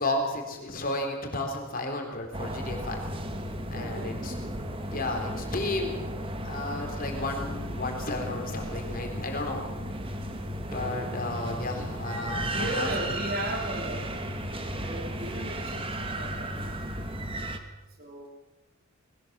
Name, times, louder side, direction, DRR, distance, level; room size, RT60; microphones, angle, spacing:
voice 1, 0.0-3.0 3.7-4.3 4.9-6.0 6.4-9.6 10.7-12.9, left 2 dB, 40° left, 3 dB, 3.9 m, -33 dB
sound 1, 2.3-17.6, right 1 dB, 25° right, 1.6 m, -34 dB
voice 2, 3.7-4.2 12.5-14.2 14.8-16.8 18.0-18.3, right 1 dB, 40° right, 3 dB, 3.7 m, -36 dB
21.0 x 18.5 x 7.5 m, 1.0 s
head